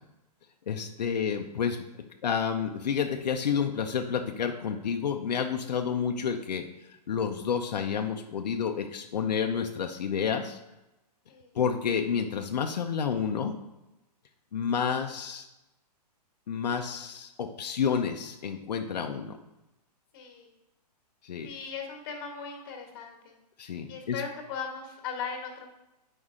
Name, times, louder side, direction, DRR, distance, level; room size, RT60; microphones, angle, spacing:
voice 1, 0.7-1.8 2.2-6.6 7.1-10.6 11.5-13.5 14.5-15.5 16.5-19.4 21.2-21.5 23.6-24.2, left 7 dB, 85° left, 4 dB, 0.7 m, -30 dB
voice 2, 20.1-20.5 21.4-23.3 23.9-25.7, left 6 dB, 35° left, 2 dB, 1.4 m, -38 dB
8.0 x 5.4 x 3.7 m, 0.96 s
hypercardioid pair, 165°, 21 cm